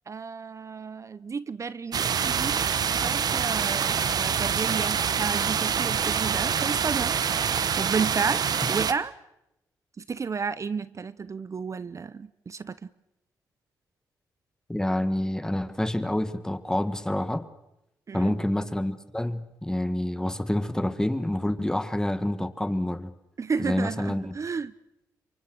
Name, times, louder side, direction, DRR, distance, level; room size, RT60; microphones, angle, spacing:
voice 1, 0.1-2.6 3.0-7.1 7.5-8.4 8.7-9.1 10.0-12.9 18.1-18.4 23.4-24.7, right 5 dB, 40° right, 16 dB, 0.8 m, -32 dB
sound 1, 1.9-8.9, right 7 dB, 60° right, 1.2 m, -26 dB
voice 2, 14.7-17.4 18.1-23.1 23.6-24.3, left 1 dB, 10° left, 11 dB, 1.8 m, -28 dB
27.5 x 24.0 x 6.3 m, 0.86 s
cardioid pair, 65°, 8 cm